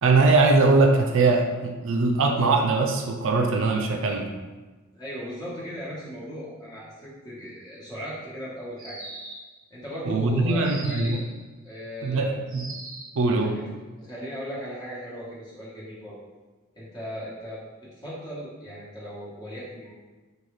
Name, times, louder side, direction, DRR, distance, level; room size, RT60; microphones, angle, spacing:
voice 1, 0.0-4.3 10.1-11.2 12.0-12.6 13.2-13.5, right 3 dB, 60° right, 3 dB, 0.4 m, -21 dB
voice 2, 4.9-9.0 9.7-11.2 11.6-12.4 13.4-13.7 14.0-16.2 16.7-19.9, equal, 20° left, -8 dB, 1.3 m, -37 dB
sound 1, 8.8-9.6 10.6-11.4 12.5-13.2, right 2 dB, 20° right, 1.1 m, -40 dB
5.5 x 2.3 x 3.2 m, 1.2 s
head